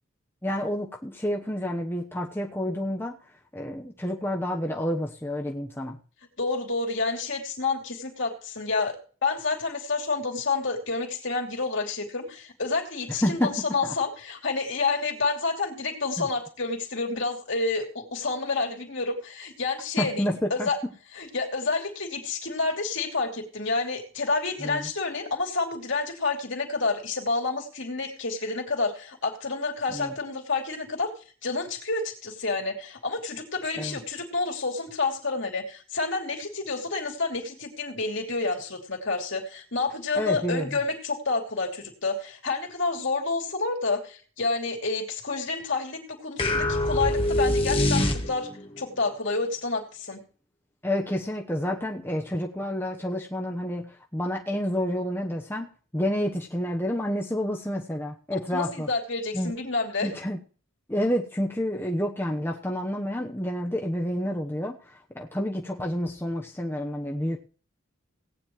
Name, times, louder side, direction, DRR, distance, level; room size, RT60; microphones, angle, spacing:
voice 1, 0.4-3.2 3.5-6.0 13.1-13.5 13.8-13.9 20.0-20.7 24.6-24.9 29.9-30.1 33.8-34.0 40.1-40.8 50.8-55.7 55.9-58.9 59.3-59.5 60.0-60.4 60.9-67.4, equal, 10° left, 0 dB, 1.0 m, -29 dB
voice 2, 6.4-20.8 21.1-31.1 31.4-48.5 48.8-50.2 58.3-60.1, left 3 dB, 60° left, 1 dB, 3.0 m, -29 dB
sound 1, 46.4-48.7, left 1 dB, 25° left, 1.4 m, -24 dB
18.0 x 9.7 x 3.2 m, 0.39 s
head